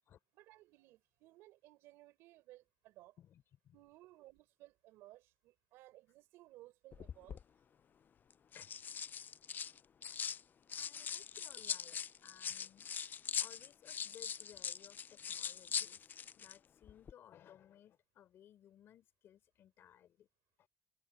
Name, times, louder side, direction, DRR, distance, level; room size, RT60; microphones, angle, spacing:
voice 1, 0.3-3.2 3.7-7.4 9.6-9.7, right 17 dB, 90° right, 4.3 m, -60 dB
voice 2, 3.2-3.7 8.5-8.7 10.7-12.9 13.4-20.3 20.6-20.7, left 10 dB, 70° left, 3.4 m, -61 dB
sound 1, 6.9-7.4 8.3-10.4 10.7-16.6 16.8-17.1, left 7 dB, 50° left, 0.3 m, -42 dB
supercardioid pair, 65°, 4 cm